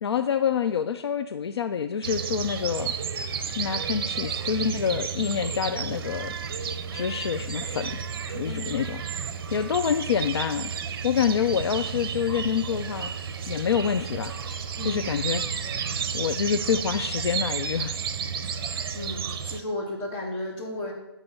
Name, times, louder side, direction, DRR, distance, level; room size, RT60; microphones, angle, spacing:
voice 1, 0.0-2.9 3.6-6.3 6.9-7.9 8.3-9.0 9.5-10.7 11.0-13.1 13.5-14.3 14.8-15.4 16.1-18.0, left 7 dB, 70° left, 9 dB, 0.5 m, -27 dB
sound 1, 2.0-19.6, right 6 dB, 55° right, 0.7 m, -32 dB
voice 2, 14.8-15.1 18.5-18.6 18.9-20.9, left 1 dB, 30° left, -2 dB, 2.5 m, -34 dB
11.5 x 4.1 x 5.5 m, 0.88 s
hypercardioid pair, 140°, 14 cm